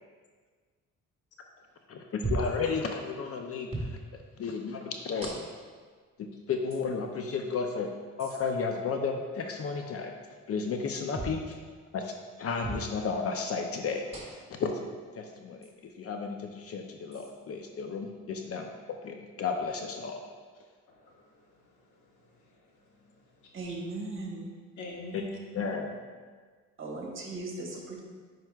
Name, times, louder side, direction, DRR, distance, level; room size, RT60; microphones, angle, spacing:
voice 1, 1.9-4.0 4.4-5.4 6.2-7.9 8.2-10.1 10.5-11.6 11.9-12.1 12.4-14.3 14.6-14.9 15.1-18.7 19.0-20.3 25.5-26.0, left 5 dB, 50° left, 4 dB, 0.6 m, -33 dB
sound 1, 2.2-2.6 3.7-4.0 5.2-5.7 6.7-6.8 8.2-8.4 11.1-11.4 12.6-12.9 14.1-14.5 15.6-15.7 17.1-17.3, right 2 dB, 20° right, 1.6 m, -36 dB
voice 2, 20.9-23.6 24.8-25.4, left 1 dB, 75° left, -1 dB, 1.2 m, -48 dB
voice 3, 23.5-24.5 26.8-28.0, right 2 dB, 40° right, 0 dB, 1.3 m, -37 dB
8.8 x 4.7 x 2.4 m, 1.5 s
cardioid pair, 90°, 30 cm